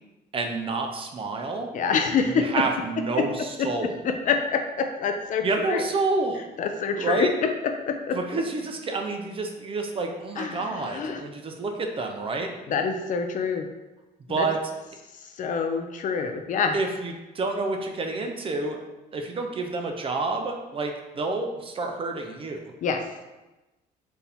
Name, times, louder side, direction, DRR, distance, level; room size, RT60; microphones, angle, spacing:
voice 1, 0.3-1.7 2.2-4.0 5.4-6.4 7.0-7.3 8.1-12.5 14.3-14.6 16.7-18.8 19.1-22.6, right 3 dB, 30° right, 3 dB, 0.6 m, -29 dB
voice 2, 1.7-2.5 4.3-5.8 6.6-7.3 7.9-8.2 10.4-11.2 12.7-13.6 14.4-14.5 15.4-16.7 22.8-23.0, left 6 dB, 50° left, 5 dB, 0.5 m, -26 dB
4.4 x 2.7 x 3.5 m, 1.1 s
cardioid pair, 110°, 17 cm